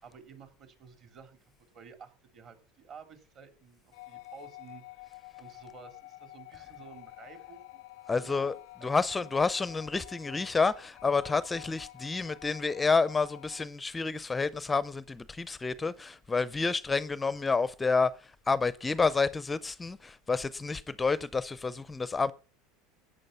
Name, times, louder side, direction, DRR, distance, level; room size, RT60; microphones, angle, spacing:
voice 1, 0.0-1.4 1.7-8.9 9.2-9.3, right 6 dB, 45° right, 3.1 m, -52 dB
sound 1, 3.9-13.7, left 18 dB, 75° left, 0.5 m, -49 dB
voice 2, 8.1-8.5 8.8-22.3, left 4 dB, 15° left, 0.6 m, -29 dB
13.5 x 8.8 x 5.6 m
supercardioid pair, 130°, 0 cm